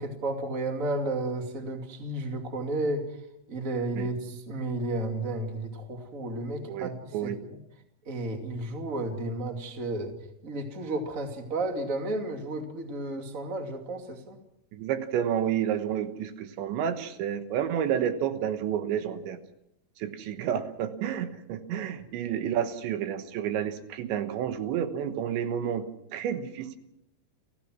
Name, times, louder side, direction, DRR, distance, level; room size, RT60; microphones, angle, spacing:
voice 1, 0.0-3.2 3.5-7.3 8.0-10.1 10.4-14.4, right 2 dB, 25° right, 4 dB, 2.1 m, -32 dB
voice 2, 6.7-7.4 14.7-19.4 20.0-26.8, right 9 dB, 80° right, 9 dB, 3.5 m, -30 dB
30.0 x 15.5 x 6.2 m, 0.83 s
omnidirectional pair, 5.1 m